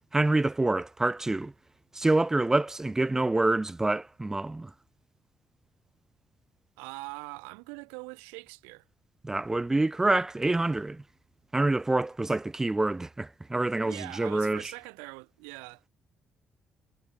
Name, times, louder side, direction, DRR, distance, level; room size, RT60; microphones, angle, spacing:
voice 1, 0.1-1.5 1.9-4.7 9.2-11.0 11.5-14.6, right 2 dB, 15° right, 0.5 m, -26 dB
voice 2, 6.8-8.8 13.8-15.9, right 33 dB, 70° right, 6.8 m, -42 dB
figure-of-eight pair, 45°, 3 cm